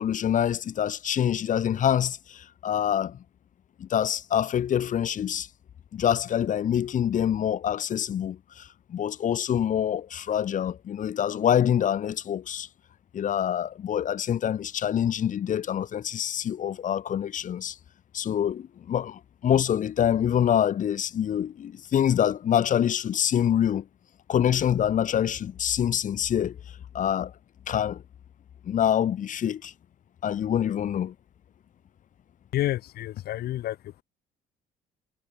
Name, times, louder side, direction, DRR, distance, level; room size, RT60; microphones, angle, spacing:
voice 1, 0.0-3.2 3.8-5.5 5.9-12.7 13.1-17.8 18.1-23.9 24.3-26.6 26.9-27.3 27.7-28.0 28.6-29.7 30.2-31.1, left 9 dB, 50° left, 1.9 m, -26 dB
voice 2, 32.5-34.0, left 14 dB, 70° left, 1.8 m, -30 dB
cardioid pair, 110°, 17 cm